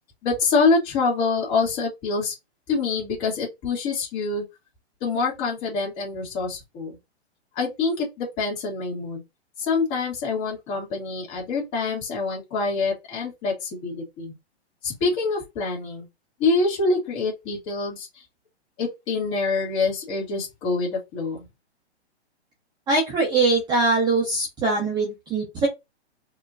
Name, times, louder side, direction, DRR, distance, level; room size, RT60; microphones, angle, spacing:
voice 1, 0.2-2.3 2.7-4.4 5.0-7.0 7.5-9.2 9.6-14.3 14.8-16.1 16.4-18.2 18.8-21.5, left 4 dB, 30° left, 2.2 m, -25 dB
voice 2, 22.9-25.7, right 3 dB, 15° right, 1.0 m, -22 dB
4.8 x 3.0 x 2.6 m
hypercardioid pair, 155°, 33 cm